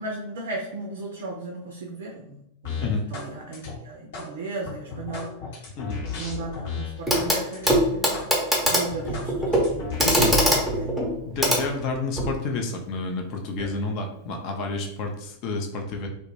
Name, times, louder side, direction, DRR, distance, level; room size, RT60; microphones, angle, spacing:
voice 1, 0.0-5.3 6.0-8.3 8.7-11.0, right 2 dB, 60° right, 0 dB, 0.3 m, -36 dB
sound 1, 2.6-3.3 3.5-4.3 4.6-7.3 7.5-7.7 8.1-8.3 8.6-10.6, left 5 dB, 60° left, 0.9 m, -34 dB
Clock, 7.1-7.4 7.7-12.4 13.6-13.7, equal, ahead, 0.6 m, -23 dB
voice 2, 10.0-10.3 11.3-16.1, left 3 dB, 40° left, 3 dB, 0.4 m, -29 dB
2.1 x 2.1 x 3.0 m, 0.77 s
figure-of-eight pair, 90°, 0 cm